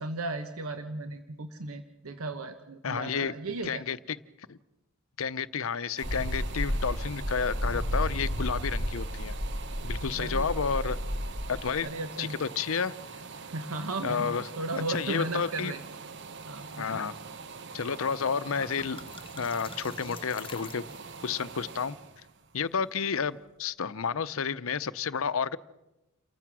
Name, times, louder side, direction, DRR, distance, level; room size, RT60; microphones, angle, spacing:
voice 1, 0.0-3.8 10.2-10.6 11.8-12.4 13.4-15.8 16.5-17.0, right 2 dB, 75° right, 9 dB, 1.0 m, -36 dB
voice 2, 2.8-3.3 3.6-4.2 4.5-4.6 5.2-9.4 9.8-11.0 11.5-11.9 12.2-12.9 14.0-14.5 14.9-15.7 16.8-17.2 17.7-19.1 19.4-20.8 21.2-22.0 22.5-25.6, left 6 dB, 70° left, 15 dB, 0.6 m, -31 dB
sound 1, 6.0-11.7, equal, 35° right, 5.6 m, -32 dB
sound 2, 6.0-23.6 24.1-24.2, right 5 dB, 55° right, 0.9 m, -44 dB
sound 3, 17.9-18.0 18.3-21.3, left 4 dB, 25° left, 1.1 m, -46 dB
28.5 x 15.0 x 6.2 m, 0.97 s
head